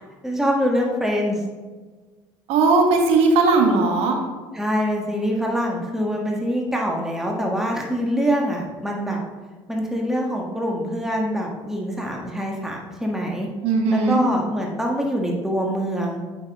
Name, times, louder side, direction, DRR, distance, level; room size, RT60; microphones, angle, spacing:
voice 1, 0.2-1.4 4.5-9.2 9.7-13.5 13.9-16.2, equal, 5° right, -1 dB, 1.5 m, -24 dB
voice 2, 2.5-4.2 13.6-14.2, right 3 dB, 70° right, 3 dB, 1.6 m, -18 dB
8.7 x 6.0 x 3.6 m, 1.4 s
supercardioid pair, 80°, 11 cm